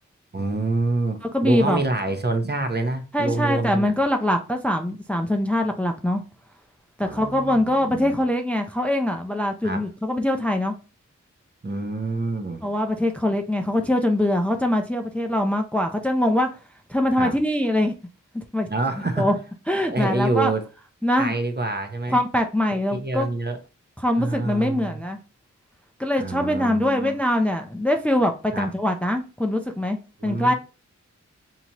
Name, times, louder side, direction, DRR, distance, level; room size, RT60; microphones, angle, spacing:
voice 1, 0.3-3.9 7.0-8.2 9.6-9.9 11.6-12.7 17.2-17.4 18.7-19.3 19.9-20.7 21.2-22.2 22.9-23.6 24.2-25.0 26.2-27.2 28.5-28.7 30.2-30.5, right 2 dB, 35° right, 0.8 m, -26 dB
voice 2, 1.2-1.8 3.1-6.2 7.0-10.7 12.6-16.5 16.9-17.9 18.3-18.7 19.2-19.3 19.7-20.5 21.0-21.3 22.1-23.3 24.0-25.2 26.0-30.5, left 1 dB, 5° left, 0.5 m, -23 dB
4.0 x 2.9 x 2.9 m
cardioid pair, 40°, 31 cm